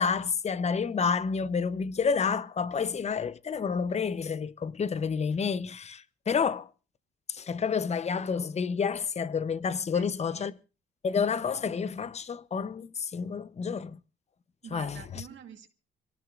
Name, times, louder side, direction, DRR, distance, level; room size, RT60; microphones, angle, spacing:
voice 1, 0.0-6.7 7.3-10.5 11.0-14.0 14.7-15.0, left 6 dB, 35° left, 0.8 m, -29 dB
voice 2, 9.9-10.6 14.6-15.7, right 8 dB, 70° right, 2.2 m, -47 dB
26.5 x 18.0 x 2.5 m
cardioid pair, 90°, 20 cm